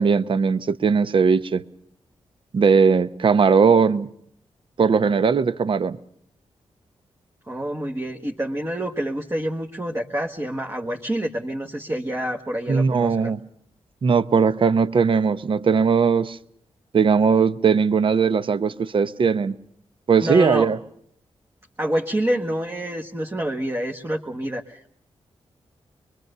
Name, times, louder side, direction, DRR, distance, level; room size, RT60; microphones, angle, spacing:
voice 1, 0.0-1.6 2.5-4.1 4.8-6.0 12.7-13.4 14.0-16.4 16.9-19.5 20.1-20.8, right 5 dB, 55° right, 0.9 m, -19 dB
voice 2, 7.5-13.4 20.2-20.7 21.8-24.9, right 1 dB, 25° right, 1.5 m, -27 dB
23.5 x 23.0 x 6.7 m
cardioid pair, 90°, 10 cm